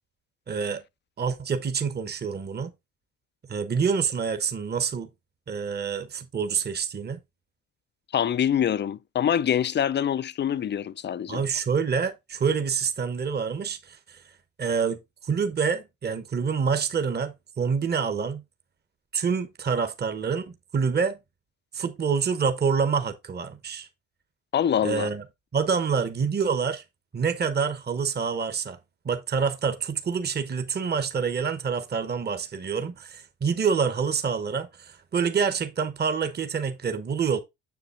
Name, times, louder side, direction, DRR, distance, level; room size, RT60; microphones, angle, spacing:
voice 1, 0.5-0.8 1.2-2.7 3.5-5.1 5.5-7.2 11.3-14.2 14.6-18.4 19.1-21.2 21.7-23.9 24.8-25.2 25.5-26.8 27.1-28.8 29.0-37.4, right 6 dB, 30° right, 1.0 m, -27 dB
voice 2, 8.1-11.4 24.5-25.1, left 9 dB, 30° left, 0.4 m, -25 dB
7.0 x 6.7 x 2.5 m
hypercardioid pair, 60°, 35 cm